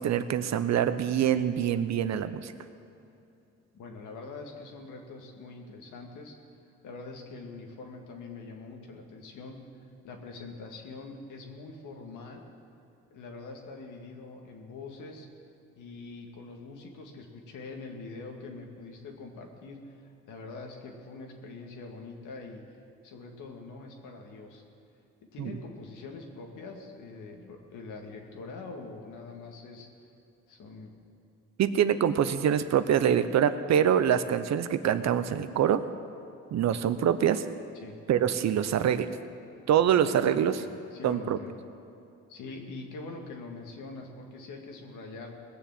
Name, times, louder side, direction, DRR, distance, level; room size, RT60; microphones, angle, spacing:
voice 1, 0.0-2.5 25.4-25.5 31.6-35.9 36.5-37.4 38.1-39.1 39.7-40.6 41.0-41.4, right 9 dB, 60° right, 11 dB, 0.8 m, -25 dB
voice 2, 3.7-6.4 6.8-9.7 10.0-12.4 13.1-15.3 15.8-22.6 23.0-24.6 25.3-29.9 30.5-30.9 37.7-38.0 40.5-41.6 42.3-45.3, left 3 dB, 80° left, 2 dB, 2.0 m, -44 dB
19.0 x 7.1 x 7.6 m, 2.8 s
cardioid pair, 90°, 30 cm